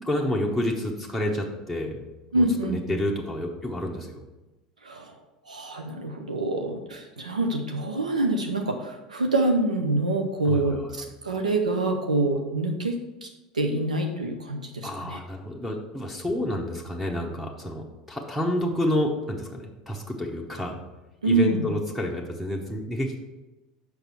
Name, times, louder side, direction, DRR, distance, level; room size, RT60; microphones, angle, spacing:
voice 1, 0.1-2.0 2.3-4.2 10.4-10.9 14.8-20.8 21.2-23.3, left 1 dB, 5° right, 1 dB, 1.0 m, -29 dB
voice 2, 2.3-2.9 4.8-5.1 5.5-13.3 13.5-15.2 21.2-21.7, right 2 dB, 85° right, 3 dB, 0.6 m, -26 dB
6.6 x 5.4 x 4.5 m, 1.1 s
figure-of-eight pair, 75°, 4 cm